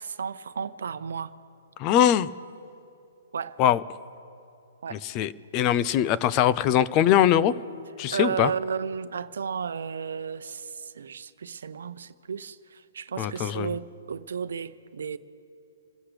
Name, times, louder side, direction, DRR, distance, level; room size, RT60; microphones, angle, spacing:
voice 1, 0.0-1.3 3.3-3.6 4.8-5.0 8.1-15.2, right 6 dB, 75° right, 0.8 m, -33 dB
voice 2, 1.8-2.3 3.6-3.8 4.9-7.5 8.0-8.5 13.2-13.7, left 10 dB, 35° left, 0.6 m, -22 dB
27.5 x 15.0 x 3.4 m
hypercardioid pair, 135°, 0 cm